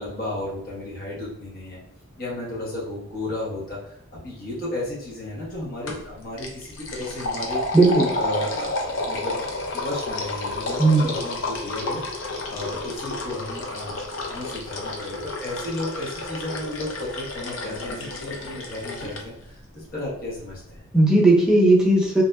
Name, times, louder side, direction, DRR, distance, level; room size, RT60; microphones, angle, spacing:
voice 1, 0.0-1.8 2.2-7.6 8.1-12.0 12.5-20.8, left 1 dB, 50° left, -7 dB, 1.0 m, -33 dB
sound 1, 5.9-6.1 6.4-19.2, left 2 dB, 75° left, 0.6 m, -31 dB
voice 2, 7.7-8.1 10.8-11.1 20.9-22.2, right 2 dB, 5° right, -3 dB, 0.5 m, -16 dB
2.7 x 2.4 x 2.2 m, 0.78 s
head